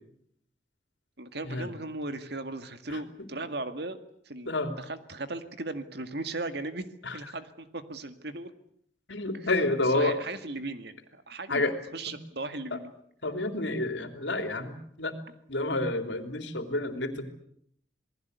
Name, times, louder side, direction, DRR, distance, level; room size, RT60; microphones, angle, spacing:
voice 1, 1.2-4.0 4.3-6.8 7.1-8.5 9.3-9.5 9.8-11.6 11.9-12.9, right 2 dB, 60° right, 9 dB, 2.1 m, -37 dB
voice 2, 9.1-10.2 11.5-11.7 13.2-15.1 15.5-17.3, left 2 dB, 75° left, 7 dB, 3.4 m, -29 dB
27.5 x 20.0 x 8.2 m, 0.68 s
head